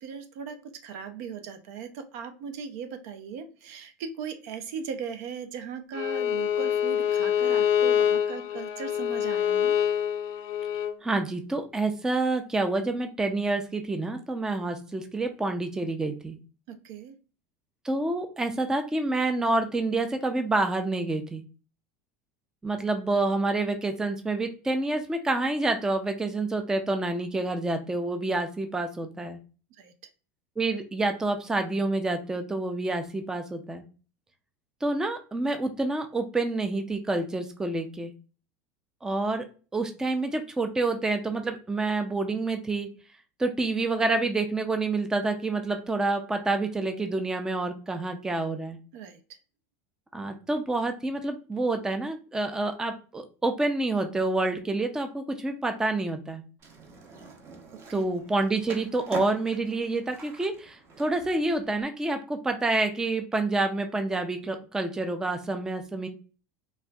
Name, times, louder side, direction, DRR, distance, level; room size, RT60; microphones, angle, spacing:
voice 1, 0.0-9.7 16.7-17.1 29.8-29.9 48.9-49.2 57.7-58.0, right 6 dB, 70° right, 8 dB, 0.6 m, -38 dB
Bowed string instrument, 5.9-10.9, left 9 dB, 55° left, 0.4 m, -25 dB
voice 2, 11.0-16.4 17.8-21.4 22.6-29.4 30.6-33.8 34.8-38.1 39.0-39.5 39.7-42.9 43.4-48.8 50.1-56.4 57.9-66.1, right 2 dB, 5° right, 6 dB, 0.4 m, -28 dB
Skateboard, 56.6-61.8, right 4 dB, 30° right, 0.8 m, -44 dB
4.3 x 2.5 x 2.3 m, 0.35 s
supercardioid pair, 130°, 8 cm